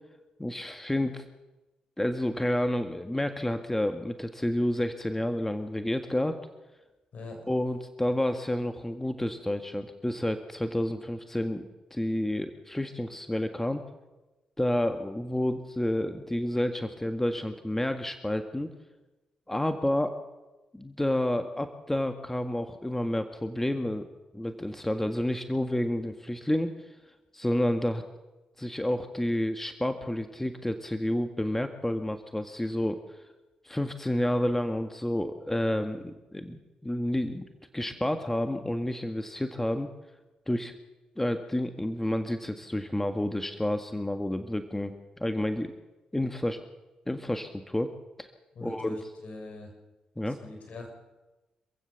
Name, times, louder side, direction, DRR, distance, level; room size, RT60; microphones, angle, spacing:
voice 1, 0.4-1.2 2.0-6.4 7.5-13.8 14.6-18.7 19.5-20.1 20.7-24.1 24.3-27.0 27.3-28.0 28.6-33.2 33.6-37.5 37.7-39.9 40.5-40.7 41.2-44.9 45.2-45.7 46.1-46.6 47.1-48.3 48.6-49.0 50.2-50.4, left 1 dB, 10° left, 7 dB, 1.8 m, -30 dB
voice 2, 48.5-49.7 50.2-50.9, left 2 dB, 60° left, 3 dB, 6.5 m, -42 dB
26.5 x 15.5 x 7.2 m, 1.1 s
supercardioid pair, 45°, 3 cm